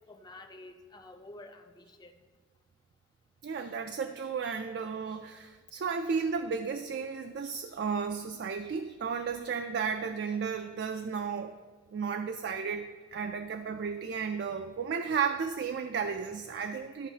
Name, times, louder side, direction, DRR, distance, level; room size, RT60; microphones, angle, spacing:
voice 1, 0.1-2.1, left 2 dB, 20° left, 6 dB, 0.5 m, -49 dB
voice 2, 3.4-11.5 11.9-17.1, right 6 dB, 60° right, 7 dB, 0.3 m, -33 dB
12.5 x 5.4 x 2.8 m, 1.5 s
head